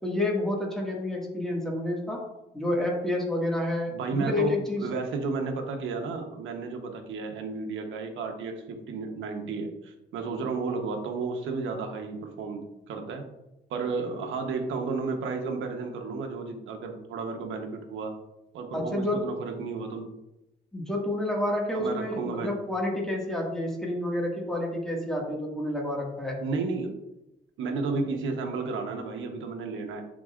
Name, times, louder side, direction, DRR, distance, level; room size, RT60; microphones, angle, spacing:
voice 1, 0.0-2.2 2.5-4.9 18.7-19.3 20.7-26.4, left 1 dB, ahead, -3 dB, 1.9 m, -29 dB
voice 2, 3.9-13.2 13.7-18.1 18.5-20.1 21.7-22.6 26.4-26.9 27.6-30.0, right 4 dB, 80° right, 4 dB, 1.1 m, -32 dB
9.7 x 4.1 x 2.5 m, 0.90 s
cardioid pair, 90°, 20 cm